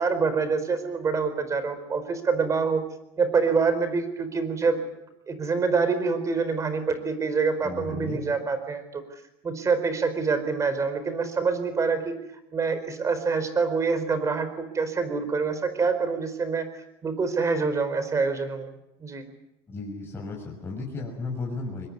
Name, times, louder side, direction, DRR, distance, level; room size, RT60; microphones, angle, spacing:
voice 1, 0.0-2.8 3.2-4.8 5.3-9.0 9.4-12.1 12.5-16.7 17.0-18.7 19.0-19.3, right 4 dB, 25° right, 11 dB, 4.4 m, -26 dB
voice 2, 7.6-8.2 19.7-21.9, left 3 dB, 20° left, -3 dB, 6.8 m, -34 dB
23.5 x 21.0 x 9.7 m, 0.86 s
supercardioid pair, 125°, 12 cm